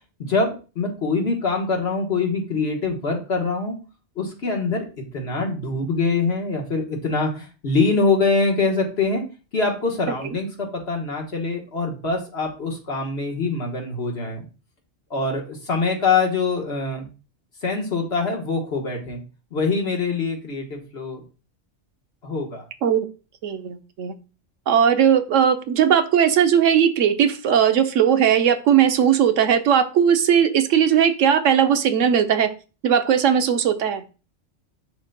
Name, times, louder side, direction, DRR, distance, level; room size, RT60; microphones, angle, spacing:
voice 1, 0.2-3.8 4.2-4.9 5.1-9.2 9.5-14.4 15.1-17.1 17.6-19.2 19.5-21.2 22.2-22.6, left 4 dB, 55° left, 1 dB, 1.6 m, -24 dB
voice 2, 23.4-24.1 24.7-32.5 32.8-34.0, right 8 dB, 85° right, 8 dB, 1.1 m, -18 dB
11.0 x 3.9 x 2.2 m, 0.33 s
omnidirectional pair, 1.3 m